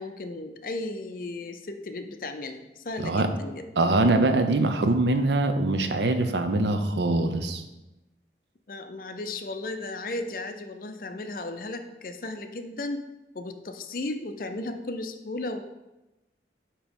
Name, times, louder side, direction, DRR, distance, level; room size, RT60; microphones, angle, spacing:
voice 1, 0.0-3.6 8.7-13.1 13.3-15.6, left 2 dB, 50° left, 7 dB, 0.6 m, -35 dB
voice 2, 3.8-7.6, right 2 dB, 80° right, 7 dB, 0.7 m, -23 dB
8.9 x 3.0 x 5.3 m, 1.0 s
head